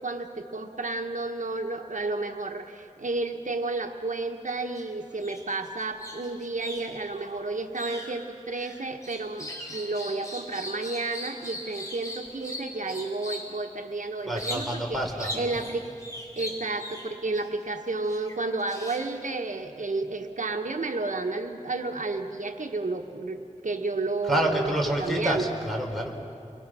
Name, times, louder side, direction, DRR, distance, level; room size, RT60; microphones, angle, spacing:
voice 1, 0.0-15.0 15.3-15.9 16.4-24.7 25.0-25.5, right 3 dB, 75° right, 4 dB, 1.2 m, -31 dB
sound 1, 4.5-4.8 5.1-13.6 14.3-14.9 15.2-17.5 18.1-19.3, left 1 dB, 25° left, 4.4 m, -39 dB
voice 2, 14.3-15.7 24.2-26.2, right 1 dB, ahead, 0 dB, 4.0 m, -28 dB
29.5 x 22.5 x 6.2 m, 2.7 s
wide cardioid pair, 65°, 13 cm